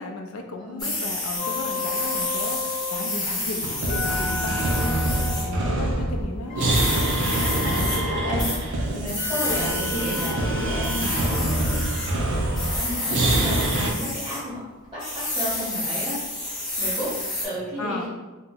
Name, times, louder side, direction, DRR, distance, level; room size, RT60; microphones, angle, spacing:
voice 1, 0.0-4.7 5.3-6.6 7.7-8.0 17.8-18.1, left 3 dB, 80° left, 4 dB, 0.4 m, -35 dB
voice 2, 0.6-1.0 4.8-4.9 7.6-14.6 14.9-17.1 17.4-18.1, equal, 20° right, -11 dB, 1.4 m, -33 dB
sound 1, 0.8-5.4 6.7-8.0 8.4-8.6 9.1-10.3 10.8-12.1 12.5-14.4 15.0-17.5, left 1 dB, 20° left, 0.9 m, -29 dB
sound 2, 1.4-3.1 3.9-5.7 6.5-8.4 9.2-11.0 11.9-12.1, left 4 dB, 40° left, 0.7 m, -34 dB
sound 3, 3.6-13.9, right 1 dB, 60° right, 0.5 m, -25 dB
2.8 x 2.1 x 3.8 m, 1.2 s
head